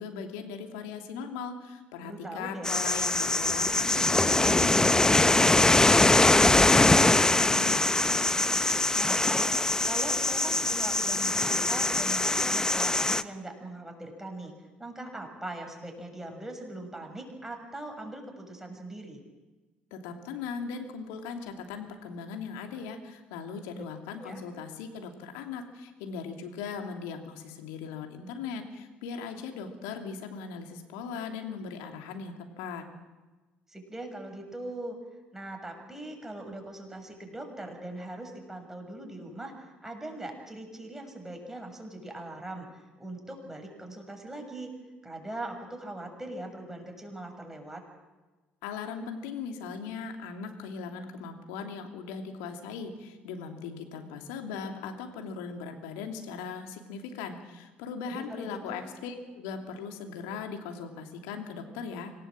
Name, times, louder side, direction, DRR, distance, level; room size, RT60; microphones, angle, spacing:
voice 1, 0.0-7.8 19.9-32.8 48.6-62.1, left 5 dB, 70° left, 4 dB, 2.9 m, -39 dB
voice 2, 2.0-2.7 9.0-14.5 14.8-19.2 23.7-23.8 24.2-24.4 33.7-35.0 35.3-44.7 45.0-47.8 58.1-58.9, right 1 dB, 10° right, 3 dB, 6.7 m, -41 dB
sound 1, 2.6-13.2, left 2 dB, 15° left, 0.9 m, -23 dB
26.0 x 18.0 x 7.6 m, 1.2 s
hypercardioid pair, 55°, 5 cm